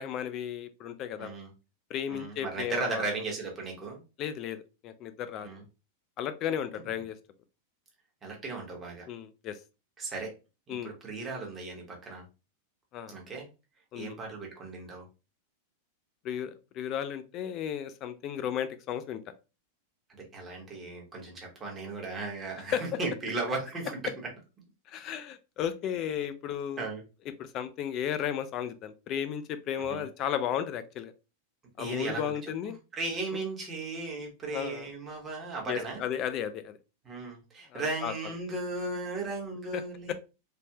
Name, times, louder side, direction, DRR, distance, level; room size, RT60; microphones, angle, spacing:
voice 1, 0.0-1.3 1.9-3.0 4.2-5.5 6.2-7.2 9.1-9.6 10.7-10.9 12.9-13.1 13.9-14.2 16.2-19.2 22.7-23.0 24.9-26.9 27.4-31.1 31.8-32.7 33.3-33.4 34.5-34.9 35.7-36.8 37.7-38.1 39.7-39.8 40.1-40.2, left 9 dB, 35° left, 11 dB, 0.3 m, -34 dB
voice 2, 1.2-1.5 2.1-4.0 5.4-5.6 8.2-9.0 10.0-10.3 10.7-12.2 13.1-13.5 13.9-15.0 20.2-24.0 26.8-27.0 29.8-30.0 31.8-32.5 32.9-36.0 37.0-40.1, right 3 dB, 15° right, -1 dB, 1.0 m, -36 dB
3.3 x 2.1 x 2.7 m, 0.30 s
supercardioid pair, 155°, 0 cm